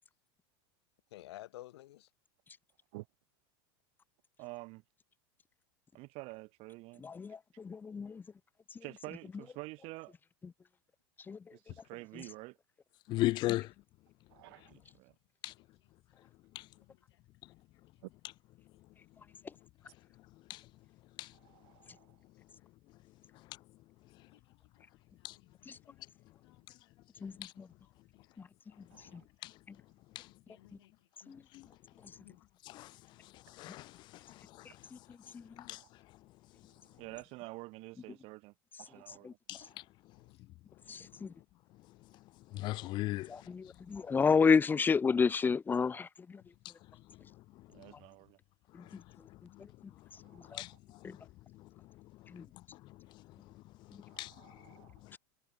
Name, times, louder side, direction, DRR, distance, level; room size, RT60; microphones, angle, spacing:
voice 1, 1.1-2.1 16.8-17.0 24.3-24.4 24.8-24.9 25.3-25.8 26.4-26.8 28.2-28.4 29.0-29.1 30.2-30.9 31.2-31.4 32.2-32.5 40.3-40.4, left 15 dB, 85° left, 8.0 m, -54 dB
voice 2, 4.4-4.8 5.9-7.0 8.8-10.2 11.5-12.6 14.4-15.1 37.0-39.3 47.7-48.4, right 23 dB, 50° right, 4.3 m, -48 dB
voice 3, 7.0-8.2 11.3-11.4 25.7-25.8 27.2-27.7 29.1-29.2 31.3-31.4 34.9-35.0 35.3-35.4 39.2-39.3 40.9-41.3 43.3-46.4 48.7-49.0 50.5-50.6 51.0-51.2 52.3-52.4, left 5 dB, 15° left, 1.3 m, -30 dB
voice 4, 13.1-13.7 15.4-15.5 20.5-20.6 21.2-21.3 25.2-25.3 27.4-27.5 29.4-29.5 30.2-30.3 31.5-31.6 32.7-32.9 33.6-33.9 35.6-35.8 39.5-39.6 42.5-43.3 50.6-50.7 54.2-54.3, left 18 dB, 35° left, 0.4 m, -34 dB
voice 5, 14.3-14.7 21.4-22.1 28.9-29.2 35.8-35.9 38.9-39.0 39.6-39.7 42.7-42.9 50.2-50.6 54.1-54.9, right 21 dB, 70° right, 2.5 m, -56 dB
supercardioid pair, 150°, 13 cm